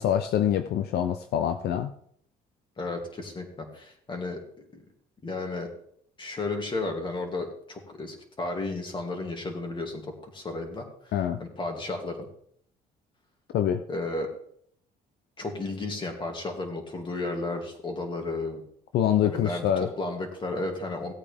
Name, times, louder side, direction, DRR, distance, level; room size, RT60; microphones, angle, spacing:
voice 1, 0.0-1.9 11.1-11.4 13.5-13.8 18.9-19.9, left 10 dB, 70° left, 9 dB, 0.7 m, -25 dB
voice 2, 2.8-4.4 4.7-4.8 5.2-5.7 6.2-11.1 11.4-12.3 13.9-14.3 15.4-18.6 19.2-21.1, left 2 dB, 30° left, 2 dB, 2.8 m, -33 dB
17.0 x 8.5 x 3.6 m, 0.65 s
cardioid pair, 110°, 17 cm